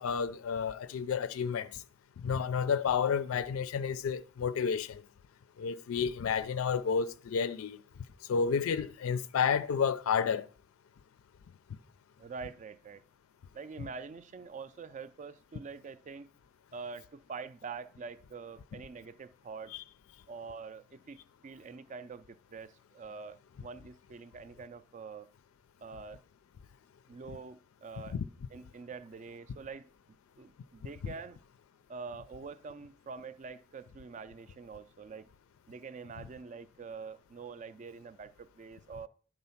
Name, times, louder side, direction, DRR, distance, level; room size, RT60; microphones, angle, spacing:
voice 1, 0.0-1.8 2.2-5.0 5.6-7.8 8.3-10.5 13.8-13.9 19.7-19.8 28.1-28.2 31.0-31.1, left 6 dB, 80° left, 0.4 m, -31 dB
voice 2, 12.2-13.0 13.5-16.3 16.7-19.7 20.3-25.3 25.8-26.2 27.1-28.1 28.5-31.4 31.9-35.3 35.7-39.1, right 5 dB, 35° right, 0.3 m, -45 dB
10.5 x 3.7 x 5.7 m
head